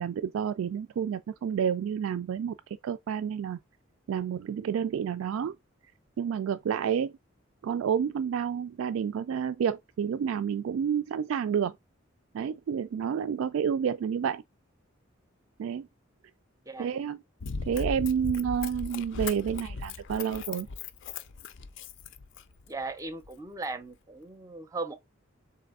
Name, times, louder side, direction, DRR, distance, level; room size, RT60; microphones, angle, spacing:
voice 1, 0.0-2.6 2.8-3.6 4.1-5.6 6.2-7.1 7.6-11.7 12.3-14.4 15.6-15.9 16.8-17.2 17.7-20.7, right 8 dB, 80° right, 0.3 m, -29 dB
Run, 17.4-22.7 23.3-23.4, left 4 dB, 65° left, 0.5 m, -37 dB
voice 2, 22.7-25.0, right 3 dB, 15° right, 0.5 m, -37 dB
4.0 x 3.3 x 3.5 m
head